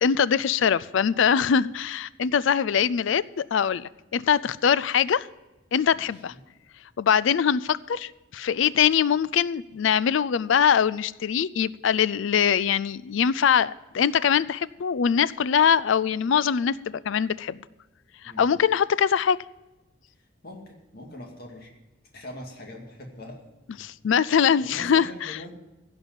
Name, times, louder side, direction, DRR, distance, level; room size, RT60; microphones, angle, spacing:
voice 1, 0.0-5.3 5.7-6.3 7.0-17.6 18.4-19.4 23.8-25.4, left 7 dB, 65° left, 19 dB, 0.4 m, -23 dB
voice 2, 5.9-6.4 18.2-18.5 20.4-21.7 22.1-23.4 23.8-23.9 24.6-25.5, left 1 dB, 50° left, 1 dB, 2.3 m, -42 dB
16.0 x 5.4 x 9.0 m, 1.0 s
head